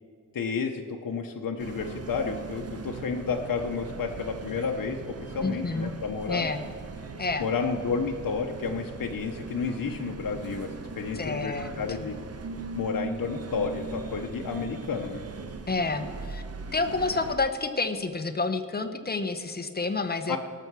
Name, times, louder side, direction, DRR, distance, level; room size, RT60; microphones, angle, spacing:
voice 1, 0.3-6.5 7.4-10.7 10.9-12.2 12.7-15.2 20.3-20.4, left 5 dB, 80° left, 2 dB, 0.8 m, -31 dB
sound 1, 1.6-17.4, right 4 dB, 45° right, 0.9 m, -39 dB
voice 2, 5.4-5.9 6.3-6.6 7.2-7.5 11.1-11.8 15.7-16.4 16.7-20.4, left 3 dB, 30° left, 7 dB, 0.9 m, -29 dB
18.0 x 7.0 x 4.7 m, 2.2 s
wide cardioid pair, 110°, 33 cm